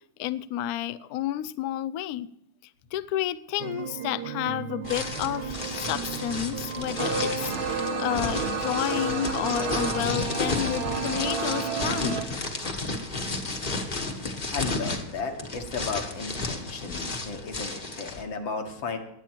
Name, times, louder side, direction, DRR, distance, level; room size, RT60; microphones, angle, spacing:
voice 1, 0.2-2.3 2.9-12.2, left 13 dB, 90° left, 15 dB, 0.8 m, -31 dB
sound 1, 3.6-12.0, right 10 dB, 70° right, 1.2 m, -37 dB
sound 2, 4.8-18.2, left 2 dB, 30° left, 1.2 m, -33 dB
sound 3, 7.0-12.2, right 3 dB, 50° right, 1.8 m, -31 dB
voice 2, 14.5-19.0, left 4 dB, 70° left, 5 dB, 2.3 m, -34 dB
20.5 x 8.4 x 4.5 m, 0.78 s
omnidirectional pair, 2.2 m